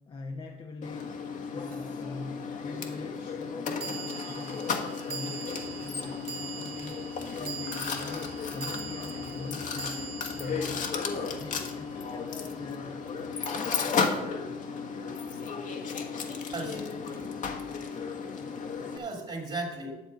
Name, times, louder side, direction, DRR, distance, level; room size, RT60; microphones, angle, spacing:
voice 1, 0.1-4.7 5.0-7.0 7.3-10.1 10.3-13.1 13.5-13.8, left 3 dB, 30° left, 2 dB, 0.9 m, -43 dB
Mechanisms, 0.8-19.0, left 5 dB, 50° left, 1.4 m, -34 dB
sound 1, 1.7-1.8 3.8-12.2, right 6 dB, 70° right, 1.9 m, -42 dB
sound 2, 5.4-16.2, left 4 dB, 80° left, 1.7 m, -53 dB
voice 2, 16.5-17.5 17.9-18.0 18.9-20.0, right 2 dB, 35° right, 1 dB, 2.3 m, -37 dB
10.5 x 7.2 x 5.2 m, 1.2 s
cardioid pair, 110°, 17 cm